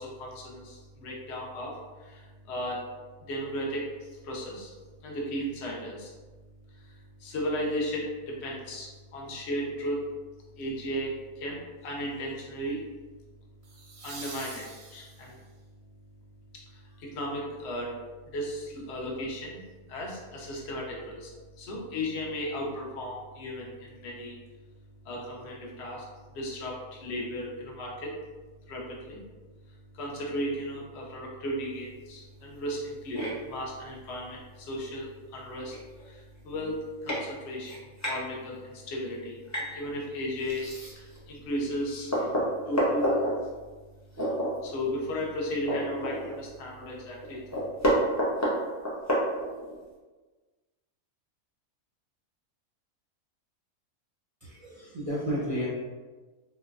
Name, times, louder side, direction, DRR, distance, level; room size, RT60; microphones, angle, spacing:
voice 1, 0.0-2.8 3.3-4.7 5.0-6.1 7.2-10.1 10.6-12.8 14.0-15.4 16.7-18.0 18.3-19.6 19.9-21.3 21.6-24.4 25.0-26.1 26.3-28.2 28.7-29.2 29.9-35.8 36.0-36.8 37.0-37.8 38.1-42.4 42.7-43.2 44.2-44.3 44.6-47.6, equal, 60° left, -3 dB, 0.8 m, -35 dB
sound 1, 10.6-10.9 13.6-15.5 18.4-18.5, right 4 dB, 85° right, 1.1 m, -45 dB
sound 2, 33.1-33.3 34.8-34.9 35.4-35.5 35.7-36.0 36.6-36.7 37.1-37.2 37.6-38.2 39.5-39.7 40.4-41.2 41.6-41.7 42.1-43.3 44.1-44.5 44.9-45.0 45.3-46.5 46.8-46.9 47.2-49.8, equal, 25° left, 0.3 m, -29 dB
voice 2, 54.4-55.7, equal, 45° right, -9 dB, 0.4 m, -32 dB
3.7 x 2.1 x 2.4 m, 1.3 s
omnidirectional pair, 1.5 m